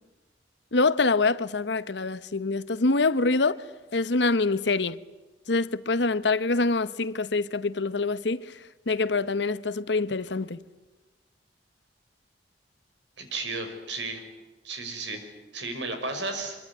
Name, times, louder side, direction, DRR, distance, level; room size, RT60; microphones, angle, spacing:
voice 1, 0.7-3.6 3.9-5.0 5.5-8.5 8.9-10.6, left 3 dB, 80° left, 1.0 m, -25 dB
voice 2, 13.2-14.2 14.6-15.2 15.5-16.6, right 3 dB, 90° right, 5.8 m, -33 dB
25.0 x 23.0 x 9.9 m
head